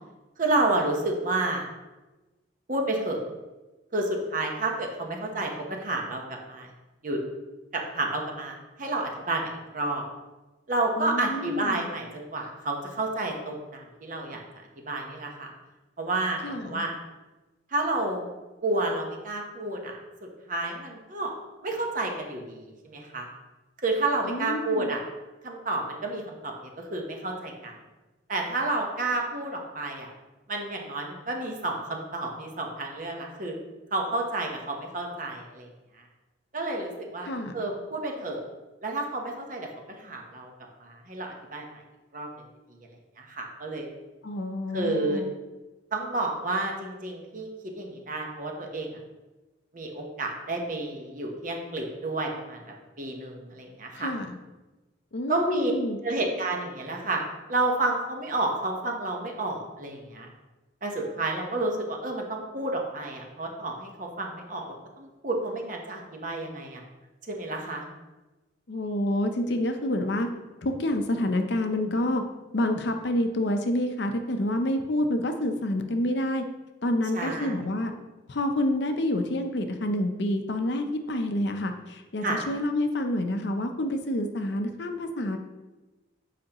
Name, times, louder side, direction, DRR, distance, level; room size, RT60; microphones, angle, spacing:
voice 1, 0.4-1.7 2.7-3.2 3.9-6.7 7.0-7.2 7.7-10.0 10.7-14.4 14.9-15.5 16.0-16.9 17.7-18.3 18.6-20.0 20.5-21.3 21.6-23.3 23.8-25.0 25.4-27.8 28.3-30.1 30.5-33.5 33.9-35.7 36.0-36.1 36.5-38.4 38.8-39.7 40.0-40.5 40.8-41.7 42.1-42.3 43.2-43.9 44.7-45.2 45.9-47.5 47.8-48.9 49.7-52.6 53.0-54.1 55.3-55.7 56.0-57.2 57.5-60.3 60.8-66.8 67.3-67.8 77.1-77.5 82.2-82.4, right 2 dB, 45° right, 1 dB, 1.0 m, -30 dB
voice 2, 11.0-11.9 16.4-16.8 24.2-24.9 37.2-37.5 44.2-45.3 54.0-54.4 55.1-56.0 68.7-70.3 70.6-72.2 72.5-76.4 76.8-77.9 78.3-85.4, left 1 dB, 60° left, 6 dB, 0.6 m, -28 dB
7.7 x 5.0 x 2.9 m, 1.1 s
head